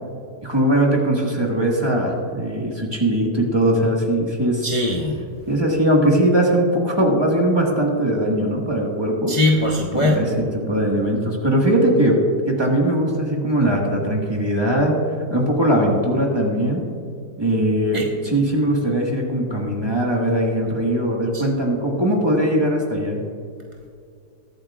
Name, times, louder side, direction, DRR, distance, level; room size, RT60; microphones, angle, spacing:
voice 1, 0.4-4.7 5.5-9.3 9.9-12.2 12.5-15.0 15.3-16.8 17.4-23.2, right 1 dB, 15° right, -1 dB, 1.5 m, -20 dB
voice 2, 4.6-5.2 9.3-10.2 17.9-18.0 21.3-21.4, left 1 dB, 40° left, -1 dB, 0.4 m, -20 dB
21.5 x 7.9 x 2.4 m, 2.3 s
omnidirectional pair, 1.7 m